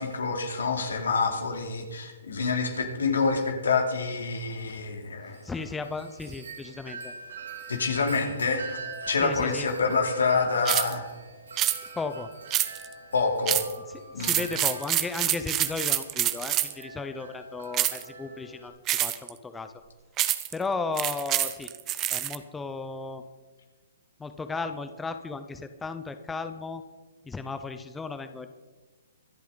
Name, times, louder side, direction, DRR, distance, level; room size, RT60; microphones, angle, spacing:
voice 1, 0.0-5.4 7.7-8.8 9.1-11.0 13.1-13.6 14.1-14.3, left 4 dB, 80° left, 3 dB, 3.0 m, -27 dB
Wind chime, 5.3-18.7, right 3 dB, 85° right, 3.2 m, -44 dB
voice 2, 5.4-7.1 9.1-9.7 11.9-12.3 14.2-19.7 20.5-21.7 22.1-23.2 24.2-26.8 27.2-28.5, left 4 dB, 10° left, 9 dB, 0.8 m, -35 dB
sound 1, 10.7-10.9 11.6-11.8 12.5-12.9 13.5-13.7 14.2-16.8 17.7-18.1 18.9-19.3 20.2-20.5 21.0-22.4, right 13 dB, 25° right, 0.9 m, -26 dB
24.5 x 8.4 x 4.1 m, 1.3 s
hypercardioid pair, 135°, 0 cm